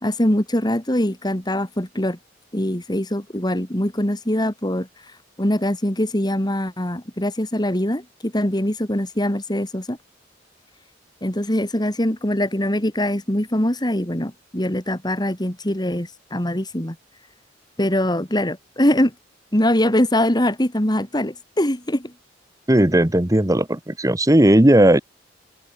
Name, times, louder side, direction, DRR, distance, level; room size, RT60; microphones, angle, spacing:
voice 1, 0.0-2.2 2.5-4.9 5.4-10.0 11.2-17.0 17.8-19.1 19.5-22.1, left 1 dB, 20° left, 2.7 m, -22 dB
voice 2, 22.7-25.0, right 1 dB, 20° right, 1.2 m, -16 dB
head